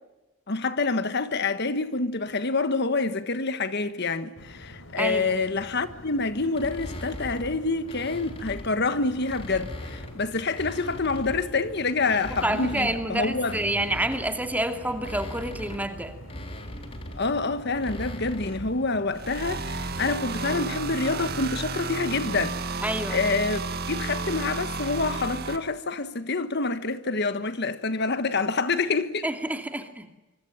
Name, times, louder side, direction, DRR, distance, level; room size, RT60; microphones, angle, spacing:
voice 1, 0.5-13.6 17.1-22.6 23.1-23.6 23.9-29.3, left 3 dB, 55° left, 1.4 m, -27 dB
sound 1, 4.4-21.6, left 1 dB, 70° left, 3.9 m, -46 dB
voice 2, 4.9-5.3 12.4-16.1 22.8-23.2 29.2-30.1, right 1 dB, 10° right, 2.6 m, -28 dB
sound 2, 6.5-8.8 9.2-11.6 12.0-18.8, left 1 dB, 30° left, 3.7 m, -40 dB
sound 3, 19.1-25.6, right 3 dB, 50° right, 1.9 m, -32 dB
26.0 x 25.5 x 9.1 m
head